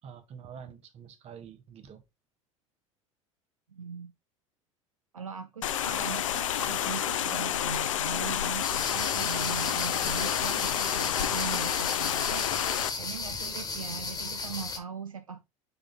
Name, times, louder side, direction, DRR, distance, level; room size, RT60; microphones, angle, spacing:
voice 1, 0.0-2.0, right 7 dB, 40° right, 1.3 m, -47 dB
voice 2, 3.7-4.1 5.1-12.5 13.0-15.4, right 6 dB, 85° right, 0.5 m, -40 dB
sound 1, 5.6-12.9, left 11 dB, 70° left, 0.5 m, -29 dB
sound 2, 8.6-14.8, left 4 dB, 20° left, 1.5 m, -35 dB
sound 3, 8.9-12.9, right 3 dB, 20° right, 1.6 m, -52 dB
6.8 x 3.9 x 3.8 m
figure-of-eight pair, 70°, 17 cm